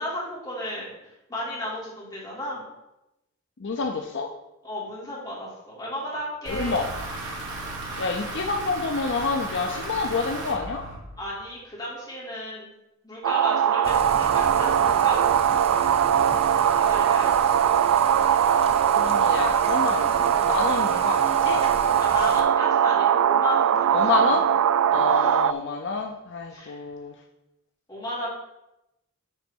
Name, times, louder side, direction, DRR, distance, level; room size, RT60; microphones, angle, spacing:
voice 1, 0.0-2.6 4.6-6.8 11.2-12.7 13.0-15.3 16.6-17.5 22.0-24.4 24.9-25.3 26.5-26.8 27.9-28.3, left 1 dB, 15° left, -7 dB, 3.1 m, -34 dB
voice 2, 3.6-4.3 6.5-6.9 8.0-10.8 18.9-21.6 23.9-24.4 24.9-27.1, left 4 dB, 55° left, 3 dB, 0.6 m, -28 dB
sound 1, 6.4-11.4, right 2 dB, 60° right, 2.8 m, -35 dB
sound 2, 13.2-25.5, right 9 dB, 80° right, 0.3 m, -21 dB
Thunder / Rain, 13.8-22.4, right 3 dB, 30° right, 0.8 m, -37 dB
11.0 x 4.1 x 4.6 m, 0.92 s
head